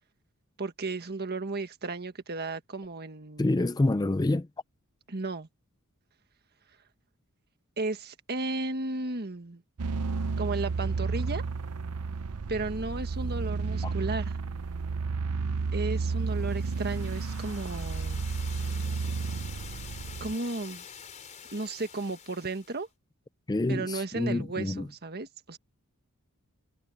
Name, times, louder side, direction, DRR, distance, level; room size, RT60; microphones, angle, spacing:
voice 1, 0.6-3.6 5.1-5.5 7.8-9.6 10.4-11.4 12.5-14.4 15.7-18.2 20.2-20.8 21.5-22.9 23.7-25.6, right 3 dB, 45° right, 1.6 m, -34 dB
voice 2, 3.4-4.5 13.8-13.9 23.5-24.9, left 2 dB, 15° left, 0.4 m, -27 dB
sound 1, 9.8-20.3, right 4 dB, 75° right, 0.6 m, -32 dB
sound 2, 16.3-22.9, left 7 dB, 35° left, 4.3 m, -47 dB
head